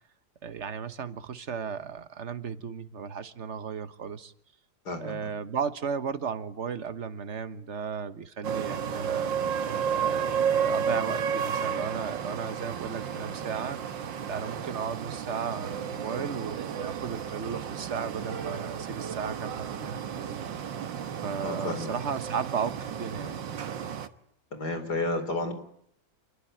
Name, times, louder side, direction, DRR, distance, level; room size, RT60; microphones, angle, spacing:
voice 1, 0.4-4.3 5.0-9.3 9.9-13.8 14.3-20.4 21.2-23.4, right 6 dB, 40° right, 1.5 m, -35 dB
voice 2, 4.8-5.3 21.4-21.9 24.5-25.5, left 2 dB, 60° left, 4.7 m, -31 dB
sound 1, 8.4-24.1, right 7 dB, 80° right, 2.0 m, -32 dB
28.0 x 22.0 x 9.2 m
omnidirectional pair, 2.0 m